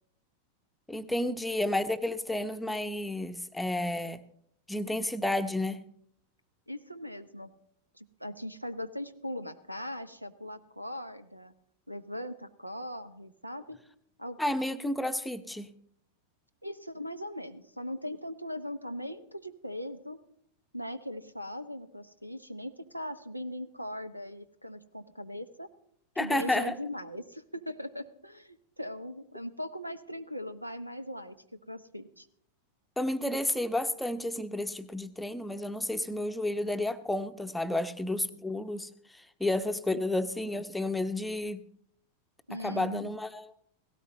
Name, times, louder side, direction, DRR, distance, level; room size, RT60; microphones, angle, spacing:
voice 1, 0.9-4.2 4.7-5.8 14.4-15.7 26.2-26.7 33.0-41.6 42.6-43.5, left 1 dB, 5° left, 9 dB, 0.7 m, -31 dB
voice 2, 6.7-7.5 7.9-11.5 11.9-13.8 14.2-14.4 16.6-20.2 20.7-25.7 26.2-31.4 31.7-32.3 42.5-43.1, equal, 90° right, 13 dB, 0.8 m, -39 dB
17.5 x 16.5 x 3.1 m, 0.68 s
figure-of-eight pair, 90°, 0 cm